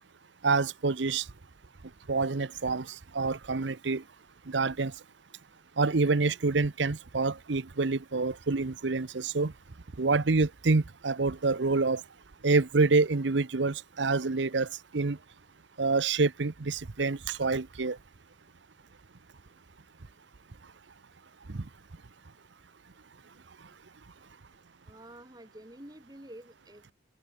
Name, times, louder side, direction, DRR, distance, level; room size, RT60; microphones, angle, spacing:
voice 1, 0.4-1.3 2.1-4.0 4.5-4.9 5.8-9.5 10.0-12.0 12.4-15.2 15.8-18.0 21.5-21.6, right 3 dB, 70° right, 0.8 m, -27 dB
voice 2, 24.8-26.9, right 1 dB, 20° right, 4.0 m, -49 dB
open air
head